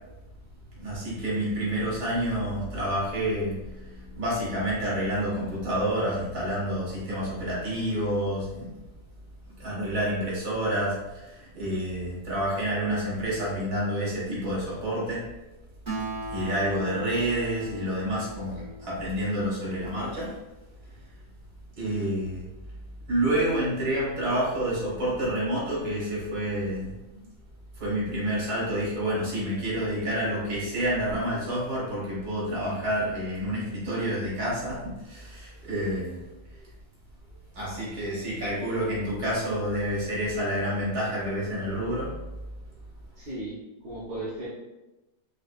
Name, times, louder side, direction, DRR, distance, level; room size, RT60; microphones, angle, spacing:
voice 1, 0.8-3.6 3.9-8.7 9.6-15.3 16.3-20.3 21.8-22.5 23.1-26.9 27.8-36.2 37.6-42.2, right 1 dB, 70° right, -7 dB, 2.1 m, -28 dB
Acoustic guitar, 15.9-19.6, right 1 dB, 30° right, 1.2 m, -38 dB
voice 2, 43.2-43.6 43.8-44.5, right 1 dB, 85° right, -10 dB, 1.8 m, -35 dB
4.9 x 2.4 x 2.4 m, 1.0 s
omnidirectional pair, 1.7 m